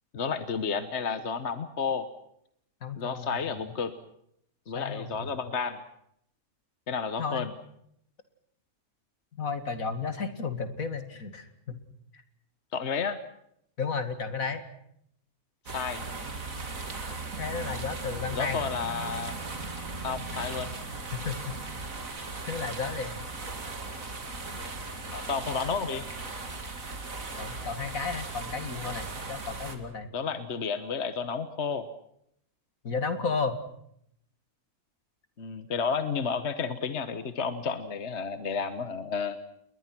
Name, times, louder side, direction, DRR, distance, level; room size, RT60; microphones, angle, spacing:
voice 1, 0.1-2.1 3.0-3.9 4.7-5.8 6.9-7.5 12.7-13.2 15.7-16.0 18.3-19.4 20.0-20.8 25.1-26.0 30.1-31.8 35.4-39.4, left 5 dB, 50° left, 11 dB, 1.4 m, -31 dB
voice 2, 2.8-3.7 4.7-5.3 7.2-7.5 9.3-11.8 12.1-12.2 13.8-14.6 17.3-18.7 20.3-20.4 21.1-21.8 22.5-23.3 27.4-30.1 32.8-33.6, left 5 dB, 65° left, 9 dB, 2.6 m, -33 dB
sound 1, 15.7-29.8, right 3 dB, 65° right, 3.1 m, -37 dB
29.5 x 21.5 x 6.0 m, 0.72 s
omnidirectional pair, 1.5 m